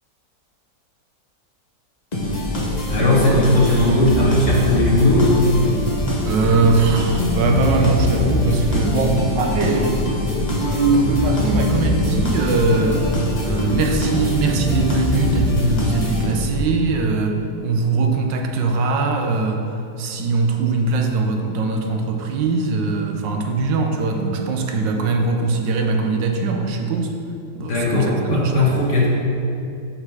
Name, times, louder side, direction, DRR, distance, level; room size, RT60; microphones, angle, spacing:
sound 1, 2.1-16.7, left 1 dB, 25° left, 1.2 m, -22 dB
voice 1, 2.9-5.4 27.6-29.1, left 2 dB, 45° left, -5 dB, 1.8 m, -17 dB
voice 2, 6.2-10.0 10.5-13.1 13.4-19.6 20.0-27.1 27.5-28.7, right 3 dB, 85° right, 3 dB, 1.5 m, -21 dB
7.2 x 6.5 x 4.9 m, 2.6 s
omnidirectional pair, 1.9 m